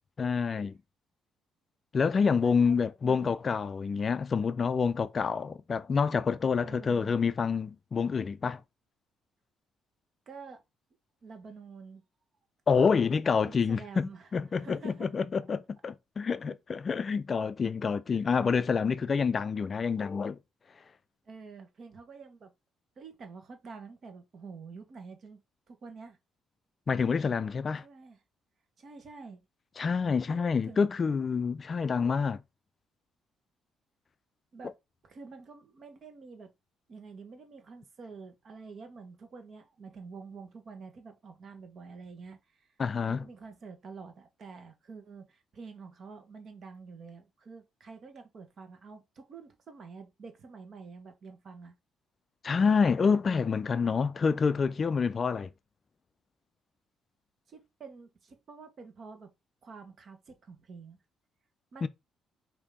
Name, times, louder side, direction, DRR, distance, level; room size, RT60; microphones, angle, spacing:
voice 1, 0.2-0.7 1.9-8.6 12.7-20.4 26.9-27.8 29.8-32.4 42.8-43.2 52.4-55.5 61.8-61.9, left 5 dB, 40° left, 0.3 m, -27 dB
voice 2, 2.4-3.3 4.4-4.5 6.5-7.1 10.3-10.6 11.2-12.0 13.4-15.1 16.3-16.4 18.1-18.3 21.2-22.5 23.0-25.4 25.7-26.2 27.8-28.2 28.8-29.4 30.6-30.9 34.5-34.7 35.0-36.5 36.9-42.7 43.1-51.8 57.5-59.3 59.6-61.0 61.7-61.9, right 4 dB, 50° right, 1.1 m, -48 dB
5.0 x 2.7 x 3.6 m
cardioid pair, 95°, 0 cm